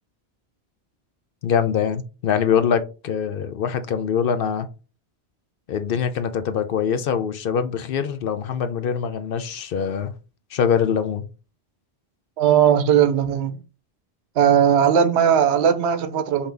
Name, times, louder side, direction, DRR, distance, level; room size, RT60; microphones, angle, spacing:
voice 1, 1.4-4.7 5.7-10.1 10.5-11.2, left 7 dB, 65° left, 0.7 m, -23 dB
voice 2, 12.4-13.6 14.4-16.5, right 8 dB, 75° right, 0.9 m, -18 dB
5.6 x 2.7 x 3.3 m
omnidirectional pair, 1.1 m